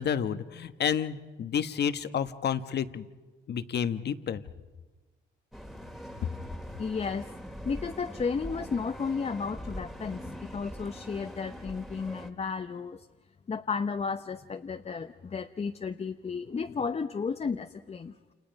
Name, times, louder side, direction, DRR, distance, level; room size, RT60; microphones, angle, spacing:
voice 1, 0.0-3.0 3.5-4.4, left 8 dB, 55° left, 11 dB, 1.2 m, -30 dB
sound 1, 5.5-12.3, equal, ahead, 2.1 m, -42 dB
voice 2, 6.8-7.3 7.6-13.1 13.5-18.1, left 5 dB, 30° left, 7 dB, 0.9 m, -33 dB
29.0 x 29.0 x 5.3 m, 1.3 s
cardioid pair, 90°, 20 cm